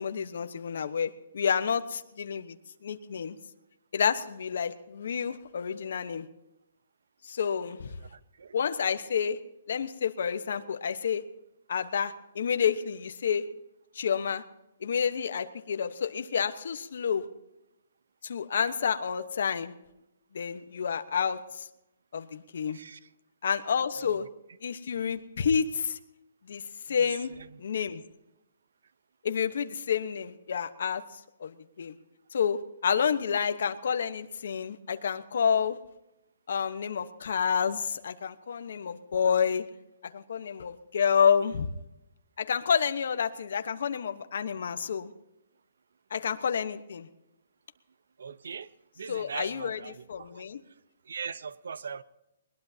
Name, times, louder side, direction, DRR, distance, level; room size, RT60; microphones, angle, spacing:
voice 1, 0.0-2.6 2.8-3.3 3.9-6.3 7.2-8.0 8.5-9.4 9.7-11.2 11.7-13.5 13.9-14.4 14.8-17.3 18.2-19.7 20.3-21.7 22.1-22.8 23.4-24.3 24.6-26.0 26.4-27.3 27.6-28.0 29.2-31.9 32.3-35.8 36.5-39.6 40.0-41.7 42.4-45.1 46.1-47.1 49.1-50.6, left 7 dB, 55° left, 1.1 m, -29 dB
voice 2, 8.1-8.6 22.7-23.0 24.0-24.3 27.3-27.5 48.2-48.7 49.0-50.4 51.1-52.0, right 6 dB, 70° right, 0.8 m, -40 dB
21.0 x 20.5 x 2.8 m
hypercardioid pair, 175°, 0 cm